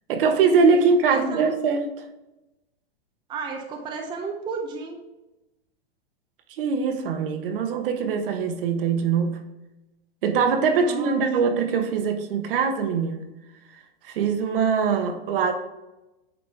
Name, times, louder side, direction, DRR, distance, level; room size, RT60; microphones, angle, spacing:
voice 1, 0.1-2.1 6.6-9.3 10.2-13.3 13.7-15.5, right 5 dB, 60° right, 6 dB, 1.2 m, -22 dB
voice 2, 1.1-1.5 3.3-5.0 10.6-11.2, right 4 dB, 15° right, 2 dB, 0.6 m, -33 dB
8.7 x 4.2 x 3.4 m, 0.98 s
hypercardioid pair, 140°, 31 cm